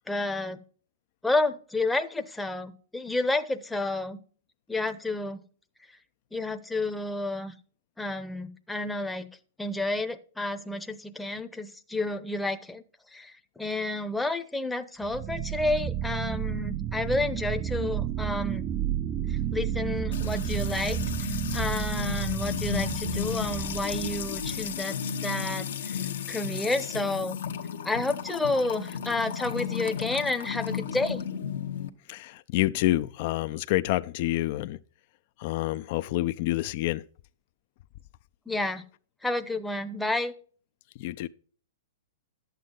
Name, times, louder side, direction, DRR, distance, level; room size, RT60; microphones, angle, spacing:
voice 1, 0.1-0.6 1.2-4.2 4.7-5.4 6.3-7.5 8.0-9.3 9.6-12.8 13.1-18.7 19.3-21.0 21.5-25.0 25.2-26.0 26.3-27.4 27.8-31.2 38.5-38.8 39.2-40.3, left 2 dB, 5° left, 0.8 m, -30 dB
sound 1, 15.0-24.8, right 11 dB, 25° right, 0.5 m, -32 dB
Music / Water tap faucet / Trickle dribble, 20.1-31.9, left 7 dB, 75° left, 1.0 m, -34 dB
voice 2, 32.1-34.8 35.4-37.0 41.0-41.3, left 16 dB, 50° left, 0.5 m, -28 dB
11.0 x 8.1 x 3.9 m
hypercardioid pair, 130°, 0 cm